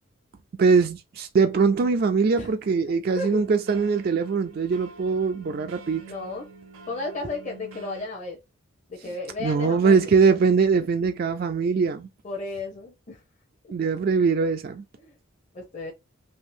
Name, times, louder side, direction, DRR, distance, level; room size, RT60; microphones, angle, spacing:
voice 1, 0.6-6.0 9.4-12.1 13.7-14.8, right 5 dB, 45° right, 0.3 m, -22 dB
voice 2, 2.9-3.4 6.1-6.4 6.9-8.4 8.9-10.0 12.2-13.2 13.6-13.7 15.0-15.1 15.5-15.9, left 3 dB, 35° left, 0.7 m, -34 dB
sound 1, 3.0-8.1, right 4 dB, 85° right, 0.7 m, -46 dB
3.5 x 2.7 x 2.6 m
head